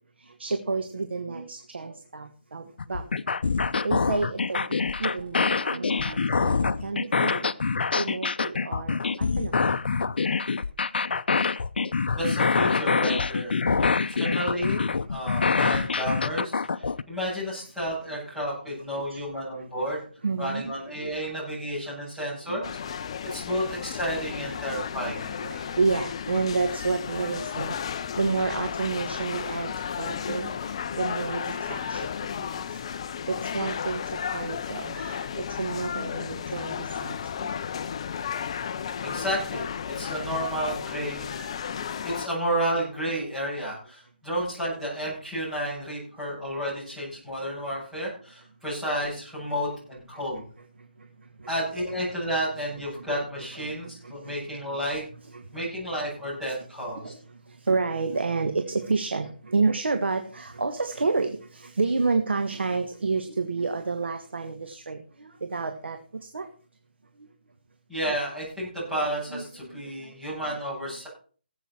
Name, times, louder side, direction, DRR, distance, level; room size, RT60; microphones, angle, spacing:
voice 1, 0.2-3.1 3.8-7.5 8.0-10.0 19.1-19.2 20.2-20.6 21.0-21.3 22.5-22.7 24.6-24.7 25.0-25.1 25.4-29.7 30.0-32.1 32.4-32.8 33.3-34.0 34.3-37.5 41.3-41.5 51.4-51.5 52.9-53.0 53.6-54.3 54.7-54.8 55.3-55.4 57.0-57.2 57.6-66.5 69.3-70.4, right 4 dB, 85° right, 7 dB, 1.5 m, -30 dB
sound 1, 2.8-17.0, left 4 dB, 65° left, 0.7 m, -25 dB
voice 2, 12.2-14.8 15.1-20.0 20.4-25.4 39.0-41.4 42.0-50.4 51.5-55.0 55.5-57.1 67.9-71.1, equal, 5° right, -11 dB, 7.9 m, -31 dB
sound 2, 22.6-42.3, left 7 dB, 30° left, 0.5 m, -33 dB
18.0 x 8.1 x 4.5 m, 0.41 s
hypercardioid pair, 170°, 6 cm